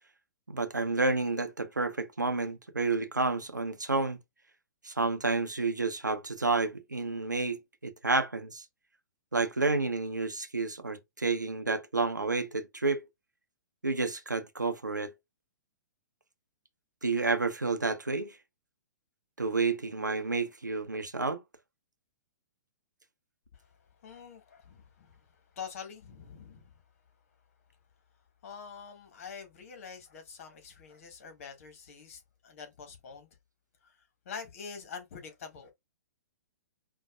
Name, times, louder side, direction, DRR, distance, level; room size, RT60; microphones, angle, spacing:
voice 1, 0.5-4.2 4.8-8.6 9.3-13.1 13.8-15.1 17.0-18.4 19.4-21.4, right 3 dB, 85° right, 0.8 m, -30 dB
voice 2, 23.5-26.8 28.4-33.3 33.8-34.0 34.3-35.7, left 6 dB, 50° left, 1.9 m, -46 dB
5.4 x 2.7 x 2.4 m
figure-of-eight pair, 115°, 10 cm